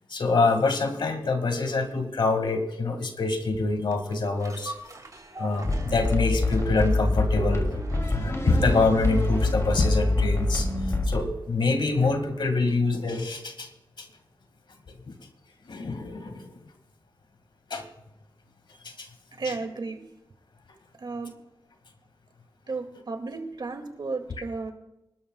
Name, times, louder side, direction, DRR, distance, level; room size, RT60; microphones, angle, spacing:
voice 1, 0.1-4.7 5.4-7.7 8.1-10.7 11.1-13.7 14.0-14.1 15.1-15.2 15.7-16.5 17.7-17.8 19.0-19.1, left 3 dB, 70° left, 6 dB, 2.1 m, -25 dB
sound 1, 3.9-12.5 12.9-13.0, right 2 dB, 45° right, 3.3 m, -40 dB
sound 2, 5.6-11.2, left 2 dB, 35° left, 2.8 m, -25 dB
voice 2, 19.4-20.0 21.0-21.3 22.7-24.7, right 3 dB, 65° right, 5 dB, 2.3 m, -33 dB
25.5 x 12.5 x 2.4 m, 0.88 s
cardioid pair, 55°, 8 cm